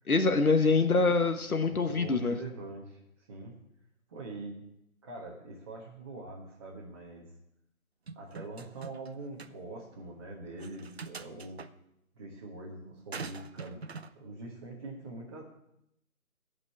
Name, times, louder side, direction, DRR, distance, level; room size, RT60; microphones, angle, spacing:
voice 1, 0.1-2.4, left 3 dB, 80° left, 7 dB, 1.4 m, -25 dB
voice 2, 1.6-3.5 4.1-4.5 5.0-7.3 8.1-11.6 12.1-15.4, right 2 dB, 20° right, -5 dB, 1.4 m, -44 dB
sound 1, 8.1-9.1 9.4-9.5 10.6-11.7 13.1-14.1, right 5 dB, 45° right, 0.6 m, -43 dB
14.0 x 5.5 x 8.3 m, 0.80 s
figure-of-eight pair, 155°, 43 cm